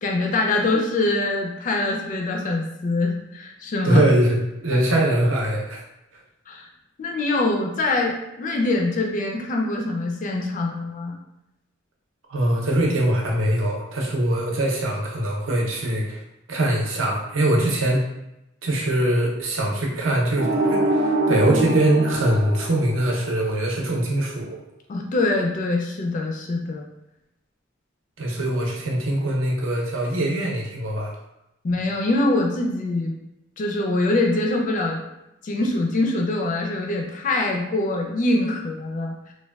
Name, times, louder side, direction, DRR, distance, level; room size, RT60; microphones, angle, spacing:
voice 1, 0.0-4.0 6.5-6.7 7.0-11.2 24.9-26.9 31.6-33.1 33.6-35.0 35.4-39.3, left 2 dB, 40° left, 1 dB, 0.3 m, -24 dB
voice 2, 3.8-5.8 12.3-16.2 16.5-18.1 18.6-24.6 28.2-31.1, right 1 dB, 70° right, -2 dB, 0.7 m, -22 dB
sound 1, 20.4-23.4, right 1 dB, 45° right, 0.3 m, -24 dB
3.2 x 2.2 x 2.2 m, 0.88 s
head